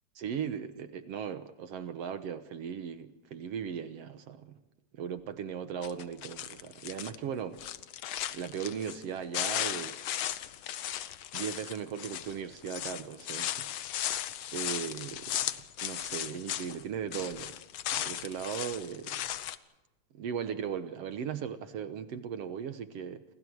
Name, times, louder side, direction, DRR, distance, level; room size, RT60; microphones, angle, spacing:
voice 1, 0.2-4.6 4.9-7.6 8.3-10.2 11.3-13.8 14.5-17.6 18.0-19.3 20.1-23.2, right 8 dB, 65° right, 1.9 m, -38 dB
sound 1, 5.8-7.2 7.5-9.0 9.3-16.8 17.1-19.6, left 11 dB, 80° left, 1.1 m, -36 dB
29.0 x 26.5 x 4.8 m
omnidirectional pair, 3.5 m